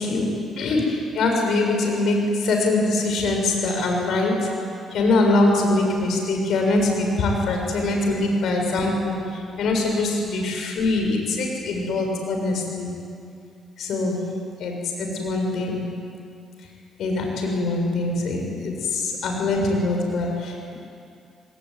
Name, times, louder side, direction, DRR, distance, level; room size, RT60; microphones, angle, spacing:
voice 1, 0.0-4.6 4.9-13.0 13.8-14.3 14.6-15.9 17.0-20.7, left 2 dB, 70° left, 2 dB, 7.1 m, -23 dB
27.0 x 19.5 x 9.7 m, 2.4 s
cardioid pair, 90°, 0 cm